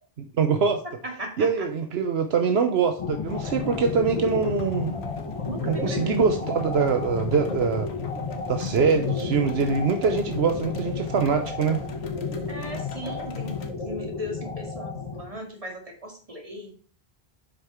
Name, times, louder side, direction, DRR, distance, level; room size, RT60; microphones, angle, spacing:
voice 1, 0.2-0.8 1.4-4.9 5.6-7.9 8.5-11.8, right 5 dB, 80° right, 7 dB, 1.1 m, -24 dB
voice 2, 1.0-1.7 5.4-6.2 12.5-16.7, equal, 35° right, 2 dB, 2.2 m, -38 dB
sound 1, 3.0-15.2, left 4 dB, 35° left, 1.1 m, -32 dB
sound 2, 3.2-13.7, left 6 dB, 85° left, 1.3 m, -38 dB
7.7 x 5.7 x 4.4 m, 0.40 s
omnidirectional pair, 1.1 m